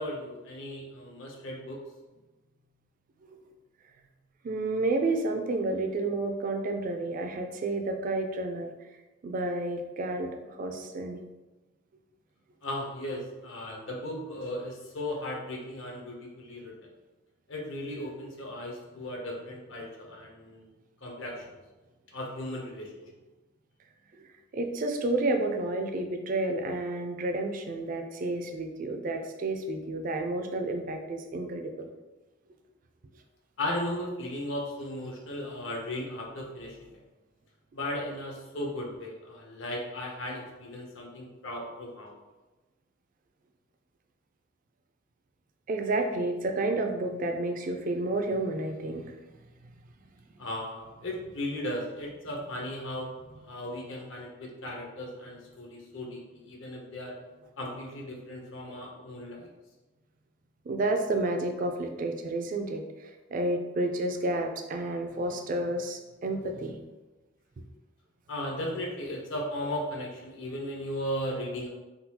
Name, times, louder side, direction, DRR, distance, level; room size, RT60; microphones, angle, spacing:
voice 1, 0.0-1.8 12.6-16.7 17.5-20.7 21.0-21.6 22.1-22.9 33.6-36.9 37.7-42.1 50.4-57.1 57.6-59.5 68.3-71.7, left 1 dB, 75° left, 0 dB, 0.8 m, -36 dB
voice 2, 4.4-8.7 9.2-11.2 24.1-24.3 24.5-31.9 45.7-49.0 60.7-66.8, right 2 dB, 45° right, 4 dB, 0.4 m, -30 dB
3.7 x 2.3 x 2.8 m, 1.1 s
head